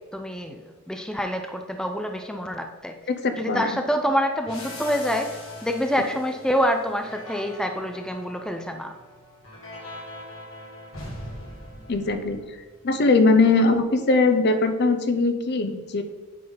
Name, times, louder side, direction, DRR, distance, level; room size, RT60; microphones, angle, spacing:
voice 1, 0.1-0.6 0.9-2.9 3.4-8.9, equal, 5° left, 5 dB, 0.5 m, -26 dB
voice 2, 3.1-3.7 11.9-12.4 12.8-16.0, left 3 dB, 55° left, 9 dB, 0.7 m, -20 dB
sound 1, 4.4-12.9, left 1 dB, 70° left, 2.3 m, -41 dB
8.5 x 5.4 x 4.0 m, 1.2 s
head